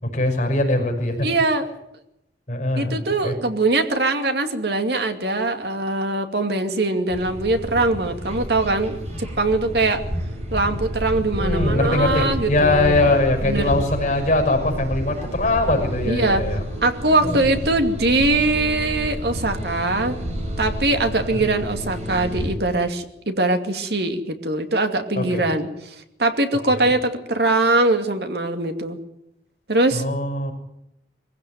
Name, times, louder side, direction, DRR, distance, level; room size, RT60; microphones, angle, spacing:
voice 1, 0.0-1.3 2.5-3.0 3.2-3.3 11.4-16.6 21.3-21.4 25.2-25.5 26.7-26.8 29.9-30.5, left 2 dB, 40° left, 3 dB, 6.2 m, -21 dB
voice 2, 1.2-1.7 2.8-10.0 10.5-13.1 13.4-13.7 16.0-16.4 16.8-20.2 20.6-25.9 26.2-29.0 29.7-30.0, right 2 dB, 65° right, 6 dB, 2.4 m, -22 dB
sound 1, 7.1-22.5, equal, 35° right, 7.4 m, -30 dB
23.0 x 16.0 x 9.3 m, 0.83 s
head